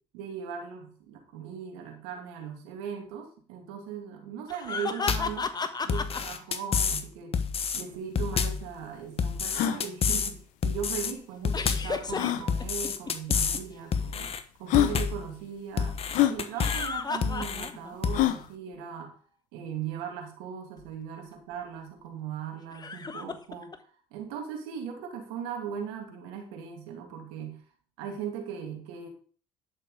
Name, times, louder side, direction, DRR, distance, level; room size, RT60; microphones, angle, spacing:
voice 1, 0.1-5.6 5.9-7.4 7.7-14.3 14.6-16.0 16.3-19.2 19.5-23.7 24.1-27.6 28.0-29.1, right 7 dB, 85° right, 2 dB, 2.5 m, -38 dB
sound 1, 4.5-6.2 11.5-13.6 16.4-18.0 18.3-18.4 20.8-20.9 22.7-23.8, left 4 dB, 30° left, 1.3 m, -33 dB
sound 2, 5.1-5.4 5.9-7.0 7.3-7.8 8.2-8.7 9.2-10.3 10.6-11.1 11.4-12.0 12.5-13.6 13.9-14.4 14.7-15.3 15.8-16.9 17.2-17.7 18.0-18.2, left 6 dB, 50° left, 1.3 m, -29 dB
sound 3, 7.9-8.0 8.2-8.3 8.8-8.9 9.4-9.8 11.1-11.2 12.1-12.5 13.4-13.5 14.3-14.4 14.7-15.0 16.1-16.4 18.1-18.5, left 13 dB, 75° left, 1.0 m, -25 dB
11.0 x 6.8 x 5.0 m, 0.43 s
supercardioid pair, 65°, 13 cm